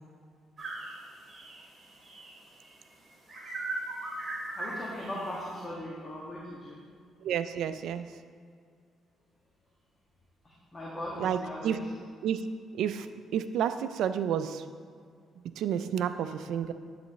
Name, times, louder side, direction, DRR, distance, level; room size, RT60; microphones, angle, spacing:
sound 1, 0.6-2.7 3.3-5.4, right 2 dB, 40° right, 2.3 m, -38 dB
voice 1, 4.5-6.8 10.4-11.8, left 1 dB, 25° left, -6 dB, 2.0 m, -39 dB
voice 2, 7.2-8.1 11.2-11.8 12.2-12.5 12.7-13.1 13.3-14.6 15.6-16.7, right 9 dB, 80° right, 11 dB, 0.4 m, -30 dB
10.0 x 8.7 x 3.1 m, 2.1 s
cardioid pair, 90°, 0 cm